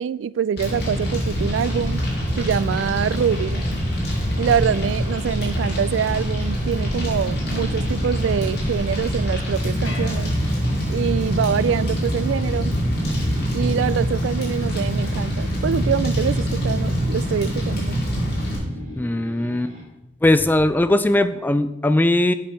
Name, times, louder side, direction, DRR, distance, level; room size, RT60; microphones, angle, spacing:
voice 1, 0.0-2.0 2.4-3.6 4.4-10.3 10.9-12.8 13.5-18.0, right 7 dB, 80° right, 19 dB, 0.3 m, -24 dB
Fire, 0.6-18.6, equal, 60° left, 3.0 m, -24 dB
sound 1, 7.0-19.8, right 1 dB, 50° right, 2.4 m, -39 dB
sound 2, 9.8-11.2, left 3 dB, 85° left, 2.7 m, -40 dB
voice 2, 19.0-19.7 20.2-22.3, left 1 dB, 10° left, 12 dB, 0.3 m, -19 dB
8.2 x 5.3 x 5.7 m, 0.92 s
head